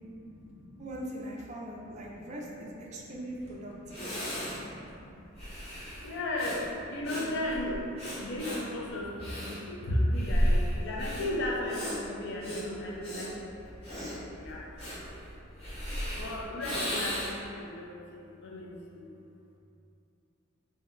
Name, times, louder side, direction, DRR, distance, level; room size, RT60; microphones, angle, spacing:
voice 1, 0.1-0.9 1.9-2.3 2.9-5.1 6.0-7.9 8.2-13.3 14.0-14.6 16.1-19.2, left 1 dB, 60° left, -3 dB, 0.5 m, -35 dB
voice 2, 0.8-4.1, right 1 dB, 35° right, -2 dB, 0.3 m, -41 dB
Breathing, 3.5-3.6 3.9-17.5, equal, 30° left, 0.8 m, -35 dB
2.7 x 2.1 x 3.7 m, 2.7 s
head